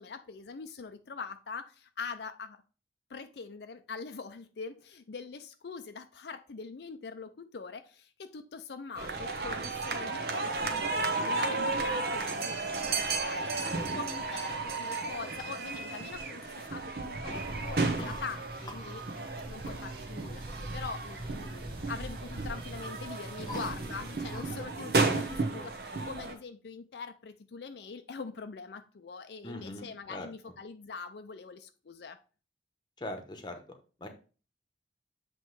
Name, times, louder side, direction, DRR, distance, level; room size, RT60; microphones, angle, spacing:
voice 1, 0.0-2.6 3.1-19.0 19.5-32.2, left 5 dB, 75° left, 8 dB, 0.5 m, -43 dB
sound 1, 8.9-26.3, right 3 dB, 60° right, 1.0 m, -33 dB
sound 2, 17.3-24.7, right 2 dB, 30° right, 0.7 m, -45 dB
voice 2, 29.4-30.3 33.0-33.6 34.0-34.1, left 1 dB, 25° left, 6 dB, 0.9 m, -41 dB
7.8 x 3.1 x 4.6 m, 0.36 s
head